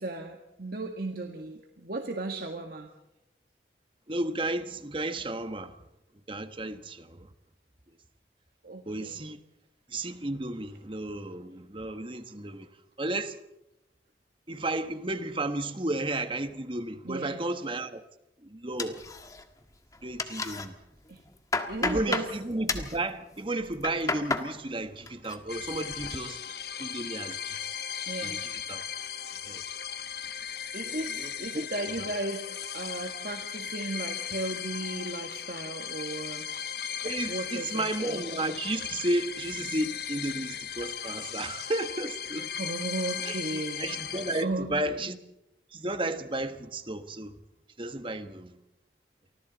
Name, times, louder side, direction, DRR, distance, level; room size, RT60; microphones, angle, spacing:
voice 1, 0.0-2.9 8.6-9.2 17.0-17.4 21.1-21.2 21.7-22.3 28.1-28.5 30.7-36.5 37.3-38.3 42.6-44.0 44.4-45.1, right 2 dB, 55° right, 1.7 m, -35 dB
voice 2, 4.1-5.7 6.3-7.3 8.8-9.4 9.9-12.7 13.0-13.4 14.5-18.0 18.4-19.0 20.0-20.8 21.8-26.4 26.8-27.6 28.4-28.8 29.4-29.6 30.8-31.7 32.0-32.1 37.0-42.5 43.3-43.4 43.8-45.2 45.7-47.3 47.8-48.6, right 2 dB, 30° right, 1.3 m, -33 dB
sound 1, 18.8-19.6 19.9-20.7 21.1-22.3 22.7-23.0 23.6-24.5 24.9-25.4 25.7-26.2, left 3 dB, 20° left, 1.4 m, -32 dB
calm beach, 25.5-44.4, left 8 dB, 60° left, 1.2 m, -37 dB
29.5 x 24.5 x 4.1 m
head